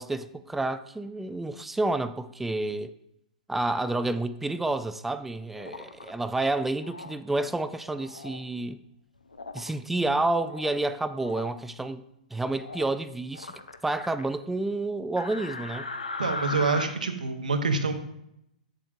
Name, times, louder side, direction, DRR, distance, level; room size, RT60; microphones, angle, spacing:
voice 1, 0.0-2.9 3.5-8.8 9.5-12.0 12.3-13.5 13.8-15.9, right 2 dB, 5° right, 0.3 m, -29 dB
sound 1, 5.5-6.1 6.8-7.1 7.9-8.4 9.3-9.7 10.2-10.8 11.1-11.5 12.5-12.9 13.3-14.3 15.2-16.8, left 3 dB, 80° left, 0.6 m, -38 dB
voice 2, 16.2-18.0, right 4 dB, 75° right, 0.8 m, -26 dB
8.1 x 7.6 x 2.5 m
figure-of-eight pair, 110°, 4 cm